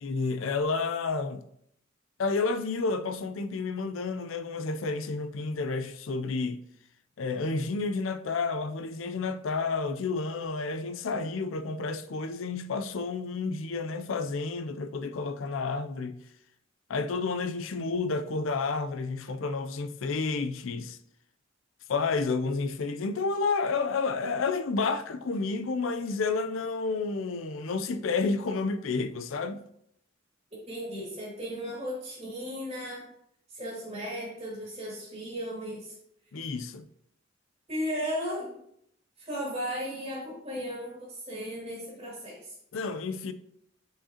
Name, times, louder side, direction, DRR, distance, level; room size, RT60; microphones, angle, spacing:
voice 1, 0.0-1.4 2.2-6.6 7.2-16.2 16.9-21.0 21.9-29.6 36.3-36.8 42.7-43.3, left 4 dB, 80° left, 0.5 m, -30 dB
voice 2, 30.5-33.1 33.5-35.9 37.7-38.5 39.2-42.6, equal, 25° right, 2.3 m, -35 dB
7.4 x 4.9 x 2.9 m
head